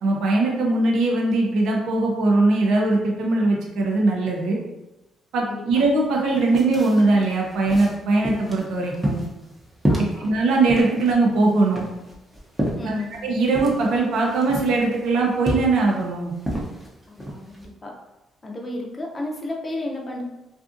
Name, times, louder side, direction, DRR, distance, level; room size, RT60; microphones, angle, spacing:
voice 1, 0.0-4.6 5.3-9.2 10.0-11.8 12.8-13.0 13.2-16.3, right 2 dB, 80° right, -1 dB, 0.6 m, -20 dB
voice 2, 5.5-5.8 9.9-10.3 12.8-13.2 17.1-18.0 18.4-20.2, left 2 dB, 30° left, 0 dB, 0.6 m, -32 dB
sound 1, 5.8-5.9 6.2-17.7, right 1 dB, 15° right, 0.7 m, -30 dB
2.6 x 2.4 x 2.5 m, 0.98 s
cardioid pair, 90°, 0 cm